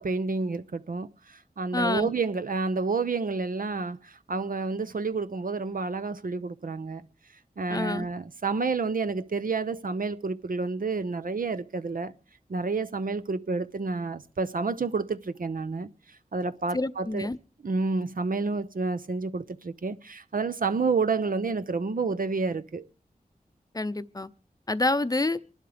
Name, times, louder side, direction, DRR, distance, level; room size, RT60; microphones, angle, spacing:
voice 1, 0.0-7.0 7.6-12.1 12.5-15.9 16.3-17.3 17.6-22.9, right 4 dB, 65° right, 0.8 m, -29 dB
voice 2, 1.7-2.1 7.7-8.1 16.7-17.4 23.7-24.3 24.7-25.4, left 2 dB, 25° left, 0.7 m, -27 dB
26.5 x 11.5 x 3.4 m
wide cardioid pair, 70°, 15 cm